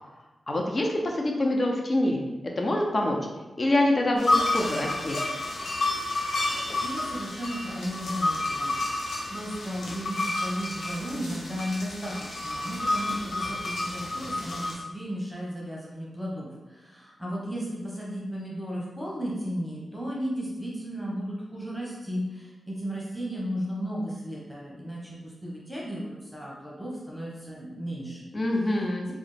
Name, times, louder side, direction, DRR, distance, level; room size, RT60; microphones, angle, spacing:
voice 1, 0.5-2.2 2.6-3.2 3.6-5.2 28.3-29.1, left 1 dB, 45° left, 1 dB, 0.6 m, -25 dB
sound 1, 4.2-14.7, left 2 dB, 85° left, 0.7 m, -30 dB
voice 2, 6.4-28.3 29.0-29.1, equal, ahead, -5 dB, 1.0 m, -35 dB
3.4 x 2.1 x 3.2 m, 1.1 s
cardioid pair, 50°, 0 cm